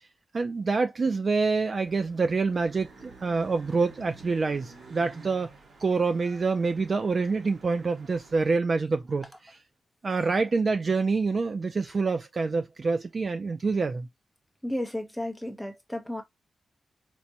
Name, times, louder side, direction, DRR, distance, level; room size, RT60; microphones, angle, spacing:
voice 1, 0.3-5.5 5.8-9.6 10.0-14.1, right 4 dB, 40° right, 0.3 m, -26 dB
sound 1, 1.8-8.5, right 3 dB, 80° right, 1.3 m, -51 dB
voice 2, 14.6-16.2, left 1 dB, ahead, 0.7 m, -33 dB
4.5 x 2.1 x 2.7 m
wide cardioid pair, 135°, 0 cm